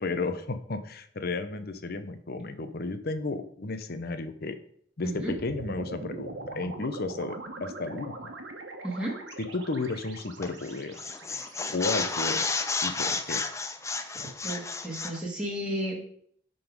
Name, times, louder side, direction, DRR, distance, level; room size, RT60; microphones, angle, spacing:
voice 1, 0.0-4.6 5.0-8.3 9.4-11.0 11.7-12.5 12.8-13.4, left 3 dB, 50° left, 10 dB, 0.7 m, -33 dB
sound 1, 5.1-13.4, right 2 dB, 65° right, 1.3 m, -42 dB
sound 2, 10.4-10.7 11.0-15.2, left 4 dB, 15° left, 0.5 m, -31 dB
voice 2, 14.4-16.0, right 1 dB, 5° right, -3 dB, 2.0 m, -33 dB
10.5 x 3.9 x 5.2 m, 0.65 s
head